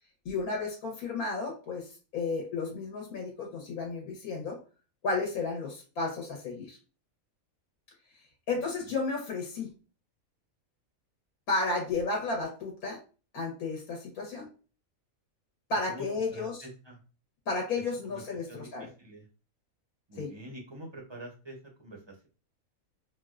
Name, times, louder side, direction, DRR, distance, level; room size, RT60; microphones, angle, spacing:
voice 1, 0.2-4.6 5.0-6.8 8.5-9.7 11.5-13.0 13.3-14.5 15.7-16.6 17.5-18.9 20.2-20.3, left 3 dB, 90° left, -1 dB, 1.3 m, -33 dB
voice 2, 8.5-8.9 15.9-17.0 18.0-18.2 18.5-19.3 20.1-22.3, right 1 dB, 40° right, 0 dB, 0.4 m, -46 dB
4.0 x 2.1 x 2.4 m, 0.36 s
omnidirectional pair, 1.5 m